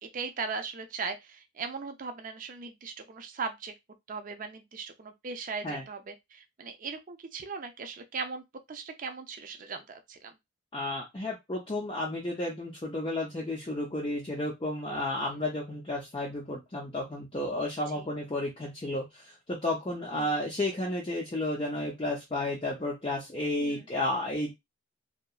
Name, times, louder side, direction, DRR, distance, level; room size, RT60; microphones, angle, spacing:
voice 1, 0.0-3.7 4.1-10.3 17.9-18.0 20.1-20.4 23.5-23.8, right 5 dB, 40° right, 0.4 m, -38 dB
voice 2, 10.7-24.5, left 1 dB, 25° left, 0.5 m, -32 dB
2.8 x 2.3 x 2.3 m
head